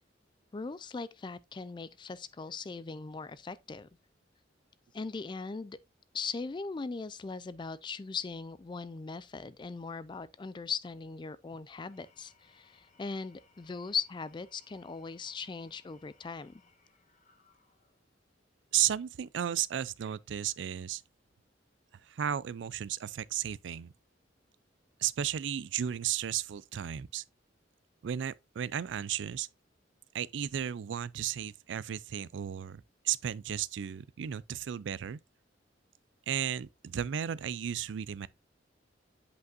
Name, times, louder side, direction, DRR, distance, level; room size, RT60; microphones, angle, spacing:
voice 1, 0.5-3.9 4.9-5.8 6.1-16.6, left 5 dB, 25° left, 0.4 m, -39 dB
Engine / Tools, 11.7-18.1, left 4 dB, 40° left, 1.4 m, -66 dB
voice 2, 18.7-21.0 22.1-23.9 25.0-27.2 28.0-29.5 30.1-35.2 36.3-38.3, right 10 dB, 70° right, 0.4 m, -34 dB
8.3 x 5.3 x 2.5 m
head